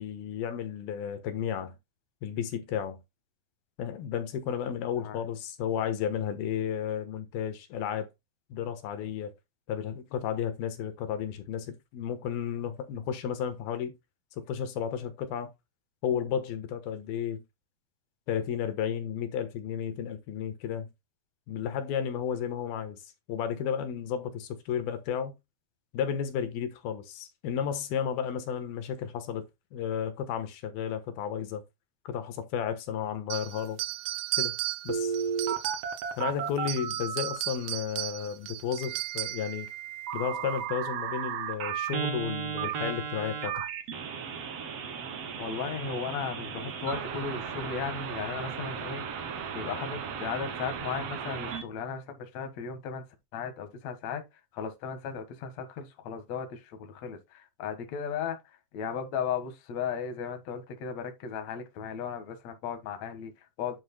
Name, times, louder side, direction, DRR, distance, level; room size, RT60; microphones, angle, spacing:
voice 1, 0.0-1.8 2.2-3.0 3.8-8.1 8.5-9.3 9.7-13.9 14.3-15.5 16.0-17.4 18.3-20.9 21.5-25.3 25.9-29.4 29.7-31.6 32.1-33.8 34.4-34.5 34.8-35.2 36.2-39.7 40.1-43.6, left 8 dB, 85° left, 3.1 m, -33 dB
sound 1, 33.3-36.2 36.6-39.5, right 18 dB, 85° right, 1.7 m, -35 dB
Telephone, 34.9-37.4 38.8-51.6, right 7 dB, 55° right, 2.1 m, -35 dB
voice 2, 45.4-49.1 49.5-53.1 53.3-54.2 54.5-63.8, left 6 dB, 55° left, 2.5 m, -36 dB
9.6 x 7.9 x 2.2 m
omnidirectional pair, 4.2 m